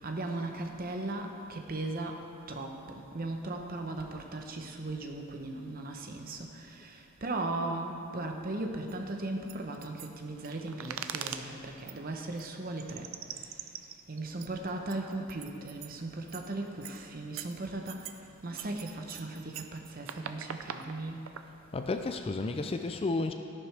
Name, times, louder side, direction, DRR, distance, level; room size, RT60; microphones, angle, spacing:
voice 1, 0.0-13.8 14.1-21.2, right 2 dB, 40° right, 3 dB, 0.8 m, -37 dB
sound 1, 8.9-9.0 9.5-11.5 11.9-12.0 12.4-12.5 12.8-15.9 16.3-16.5 16.8-17.0 17.3-18.2 18.6-21.5, right 8 dB, 60° right, 0.5 m, -42 dB
voice 2, 21.7-23.3, left 3 dB, 25° left, 6 dB, 0.3 m, -32 dB
12.5 x 11.0 x 3.4 m, 2.6 s
head